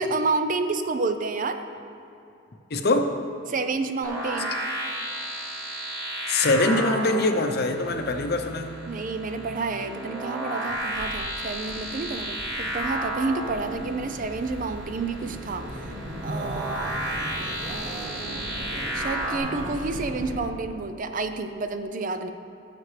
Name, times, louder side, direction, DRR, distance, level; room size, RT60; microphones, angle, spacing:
voice 1, 0.0-1.7 3.5-4.6 8.9-15.9 16.2-16.9 17.7-22.3, right 3 dB, 45° right, 8 dB, 0.5 m, -30 dB
voice 2, 2.7-3.1 6.3-8.7, left 2 dB, 55° left, 6 dB, 0.7 m, -23 dB
sound 1, 4.0-19.4, right 1 dB, 20° right, 2.5 m, -33 dB
sound 2, 10.7-20.4, right 1 dB, 90° right, 1.0 m, -38 dB
16.0 x 6.7 x 3.3 m, 2.7 s
head